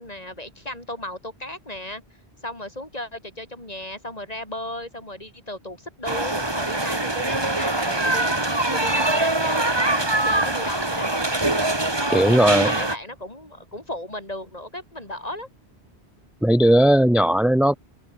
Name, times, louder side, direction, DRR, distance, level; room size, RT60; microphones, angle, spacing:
voice 1, 0.0-2.0 2.4-8.3 8.7-9.6 9.9-11.1 11.8-15.5, left 1 dB, 35° left, 5.2 m, -35 dB
sound 1, 6.1-13.0, right 2 dB, 25° right, 2.1 m, -23 dB
voice 2, 12.1-12.7 16.4-17.8, right 1 dB, ahead, 0.8 m, -17 dB
omnidirectional pair, 1.1 m